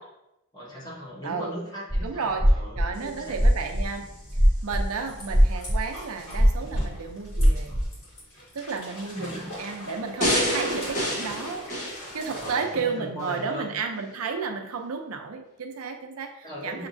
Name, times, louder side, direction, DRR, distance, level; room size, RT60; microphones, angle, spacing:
voice 1, 0.5-3.3 7.6-7.7 9.0-9.5 12.3-14.0 16.4-16.9, equal, 20° left, -7 dB, 1.5 m, -38 dB
voice 2, 1.2-1.5 2.0-2.5 2.7-4.1 4.6-7.8 8.5-11.7 11.9-16.9, right 5 dB, 75° right, 4 dB, 0.6 m, -32 dB
sound 1, 1.9-2.1 2.3-4.8 5.1-5.9 6.3-7.8, equal, ahead, 0.5 m, -20 dB
sound 2, 2.9-12.5, equal, 75° left, 1.6 m, -43 dB
sound 3, 10.2-12.7 13.2-13.3, equal, 35° left, 1.1 m, -28 dB
6.0 x 2.9 x 2.6 m, 0.86 s
head